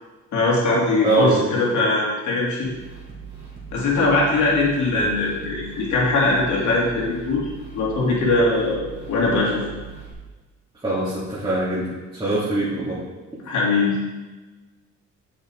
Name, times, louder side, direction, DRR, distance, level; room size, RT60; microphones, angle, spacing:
voice 1, 0.3-2.7 3.7-9.6 13.4-14.0, left 2 dB, 70° left, -4 dB, 3.2 m, -21 dB
voice 2, 1.0-1.6 4.9-5.1 10.8-11.9 12.1-13.0, right 2 dB, 15° right, -10 dB, 3.0 m, -23 dB
sound 1, 2.6-10.1, right 6 dB, 35° right, 3.1 m, -40 dB
7.4 x 7.2 x 4.9 m, 1.2 s
cardioid pair, 90°, 30 cm